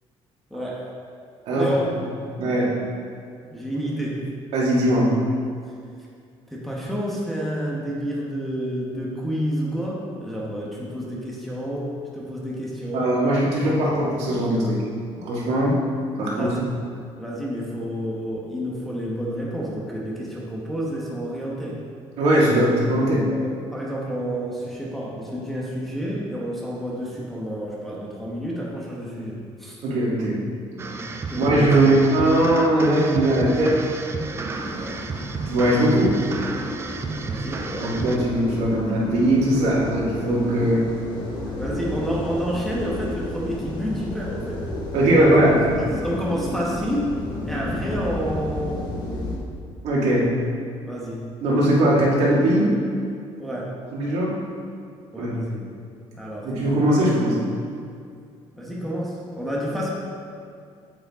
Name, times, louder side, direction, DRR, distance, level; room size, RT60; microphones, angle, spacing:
voice 1, 0.5-0.9 1.5-1.9 3.5-4.2 6.5-13.2 16.3-16.6 17.2-21.8 22.5-22.6 23.3-23.4 23.7-29.8 30.9-31.8 34.7-35.0 37.2-38.0 40.6-40.7 41.6-44.6 45.1-45.4 45.8-47.2 47.4-48.9 50.1-50.2 50.9-51.7 53.4-53.8 55.1-55.6 56.1-56.5 58.5-59.9, equal, ahead, -5 dB, 1.2 m, -29 dB
voice 2, 2.4-2.7 4.5-5.2 12.9-14.8 15.2-15.8 16.2-16.5 22.2-23.3 29.8-30.4 31.4-33.8 35.5-36.2 37.8-40.8 44.9-45.6 49.8-50.3 51.4-52.7 53.9-54.4 55.2-55.3 56.4-57.4, right 1 dB, 70° right, -5 dB, 2.2 m, -20 dB
sound 1, 30.8-38.2, right 4 dB, 20° right, 0.5 m, -31 dB
sound 2, 34.5-49.4, left 1 dB, 40° left, 1.5 m, -32 dB
8.9 x 8.2 x 3.7 m, 2.3 s
cardioid pair, 170°, 11 cm